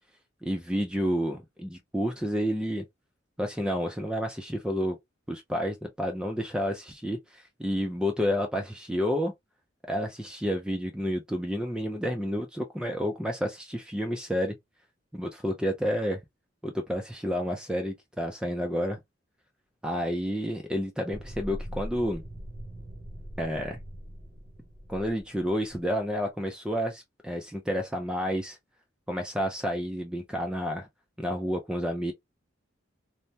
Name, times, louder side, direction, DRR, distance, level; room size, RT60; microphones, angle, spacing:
voice 1, 0.4-2.8 3.4-5.0 5.3-9.3 9.9-14.5 15.1-16.2 16.6-19.0 19.8-22.2 23.4-23.8 24.9-28.6 29.1-30.9 31.2-32.1, equal, 5° right, 0.4 m, -30 dB
sound 1, 21.1-25.9, equal, 30° right, 0.7 m, -42 dB
3.2 x 2.0 x 2.7 m
head